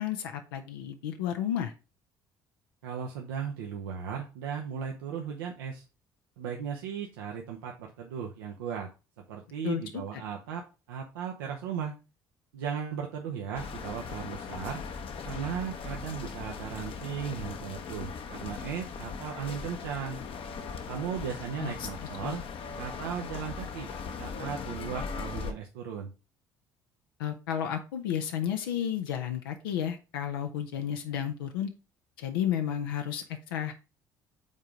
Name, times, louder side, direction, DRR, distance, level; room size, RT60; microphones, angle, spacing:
voice 1, 0.0-1.7 9.6-10.0 21.6-21.9 22.2-22.4 27.2-31.7 32.2-33.7, left 9 dB, 80° left, 6 dB, 0.6 m, -32 dB
voice 2, 2.8-5.8 6.4-8.9 9.3-12.0 12.5-14.8 15.2-20.2 20.9-22.4 22.8-23.9 24.2-26.1, right 7 dB, 80° right, 1 dB, 0.7 m, -36 dB
sound 1, 13.5-25.5, left 5 dB, 50° left, 0.8 m, -39 dB
5.4 x 3.8 x 4.8 m, 0.30 s
hypercardioid pair, 55°, 12 cm